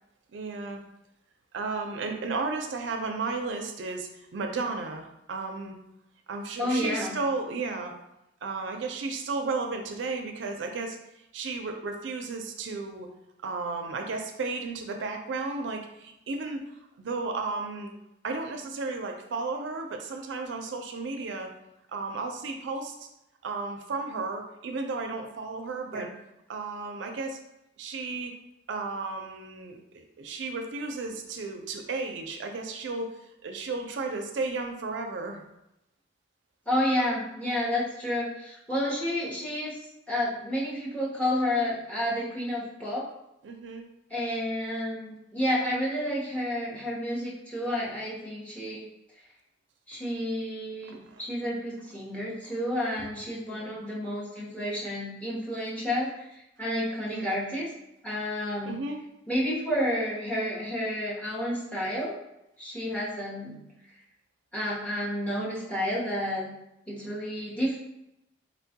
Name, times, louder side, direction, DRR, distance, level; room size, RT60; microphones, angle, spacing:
voice 1, 0.3-0.8 1.5-5.8 6.3-7.9 8.4-11.0 11.3-13.1 13.4-16.6 17.0-17.9 18.2-21.5 21.9-23.1 23.4-26.1 26.5-27.4 27.8-28.3 28.7-33.1 33.4-35.4 43.4-43.8 50.9-51.2 53.0-53.1 53.5-53.8 57.0-57.4 58.6-59.0, right 3 dB, 70° right, 4 dB, 0.4 m, -33 dB
voice 2, 6.6-7.2 25.9-26.1 36.7-39.8 40.1-43.1 44.1-48.9 49.9-57.7 58.0-58.8 59.3-62.2 62.6-63.6 64.5-66.5 66.9-67.8, left 1 dB, 5° left, -6 dB, 0.7 m, -30 dB
4.1 x 2.2 x 2.7 m, 0.87 s
head